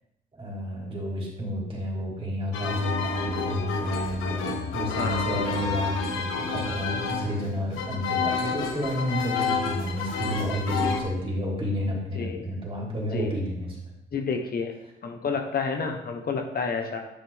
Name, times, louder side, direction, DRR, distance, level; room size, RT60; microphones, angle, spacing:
voice 1, 0.3-13.8, equal, 25° right, -3 dB, 3.3 m, -30 dB
sound 1, 2.5-11.0, left 5 dB, 90° left, 1.2 m, -29 dB
voice 2, 4.9-5.3 12.1-12.5 13.1-13.3 14.1-14.7 15.0-17.0, left 5 dB, 50° left, 3 dB, 1.1 m, -30 dB
10.0 x 5.9 x 3.6 m, 0.84 s
cardioid pair, 90°, 20 cm